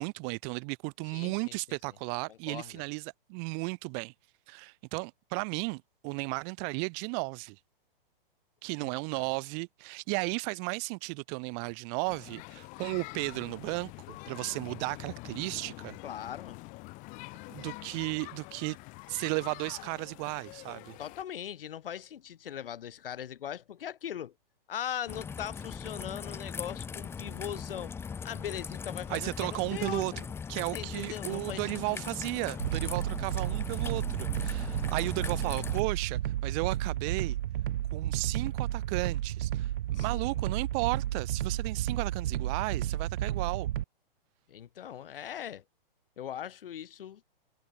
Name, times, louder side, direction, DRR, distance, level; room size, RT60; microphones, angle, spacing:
voice 1, 0.0-4.1 4.5-7.6 8.6-13.9 14.3-16.0 17.5-18.8 19.1-21.0 29.1-37.4 37.9-43.7, right 40 dB or more, 15° right, 0.4 m, -34 dB
voice 2, 1.1-1.6 2.3-2.8 8.8-8.9 16.0-16.6 21.0-24.3 24.7-27.9 28.2-30.2 30.7-32.1 39.9-40.4 44.5-45.6 46.2-47.2, left 10 dB, 70° left, 2.4 m, -40 dB
sound 1, 12.1-21.2, left 25 dB, 25° left, 1.6 m, -46 dB
Raindrop / Trickle dribble, 25.1-35.8, left 6 dB, 10° left, 1.0 m, -40 dB
sound 2, 32.6-43.8, right 12 dB, 60° right, 0.6 m, -32 dB
open air
hypercardioid pair, 150°, 29 cm